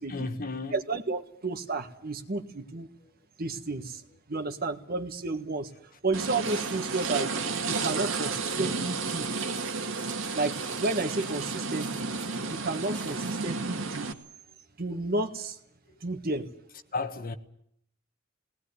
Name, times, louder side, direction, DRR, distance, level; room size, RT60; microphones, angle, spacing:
voice 1, 0.1-0.8 3.0-3.1 7.3-7.4 15.9-16.0 16.9-17.4, left 3 dB, 45° left, 1.4 m, -34 dB
voice 2, 0.7-2.9 3.4-4.0 4.3-5.7 6.0-7.3 7.7-9.3 10.3-12.1 12.5-14.1 14.8-15.6 16.0-16.5, right 3 dB, 50° right, 1.7 m, -32 dB
sound 1, 6.1-14.1, right 4 dB, 75° right, 2.0 m, -32 dB
Plastic bags rustling, 6.4-13.6, right 5 dB, 20° right, 2.1 m, -49 dB
19.5 x 19.0 x 9.7 m
head